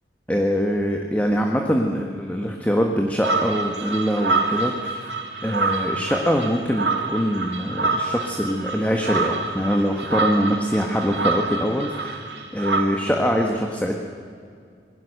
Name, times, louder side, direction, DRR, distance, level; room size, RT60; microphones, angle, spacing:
voice 1, 0.3-5.0 5.4-12.2 12.5-13.9, equal, 10° left, 1 dB, 1.5 m, -23 dB
sound 1, 3.2-12.8, right 3 dB, 70° right, 2.8 m, -26 dB
27.0 x 21.5 x 6.7 m, 2.2 s
head